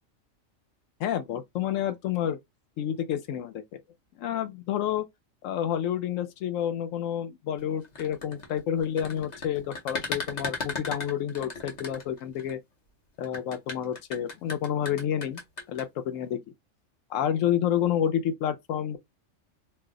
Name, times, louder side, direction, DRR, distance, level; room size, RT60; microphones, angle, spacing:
voice 1, 1.0-2.4 2.8-3.8 4.2-5.0 5.4-12.6 13.2-15.4 15.7-16.4 17.1-19.0, left 10 dB, 80° left, 1.0 m, -29 dB
sound 1, 7.8-12.5 13.2-15.8, left 3 dB, 40° left, 0.7 m, -36 dB
2.6 x 2.1 x 3.6 m
omnidirectional pair, 1.3 m